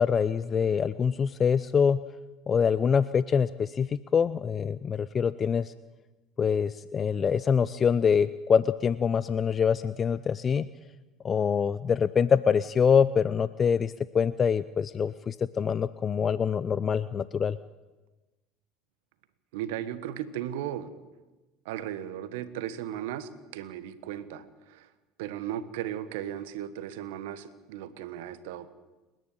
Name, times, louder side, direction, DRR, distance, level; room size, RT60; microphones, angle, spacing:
voice 1, 0.0-2.0 2.5-5.7 6.4-10.7 11.2-17.6, left 6 dB, 35° left, 16 dB, 0.6 m, -25 dB
voice 2, 19.5-20.9 21.6-24.9 25.2-28.7, right 11 dB, 70° right, 14 dB, 1.4 m, -36 dB
29.5 x 10.5 x 9.2 m, 1.2 s
hypercardioid pair, 70°, 0 cm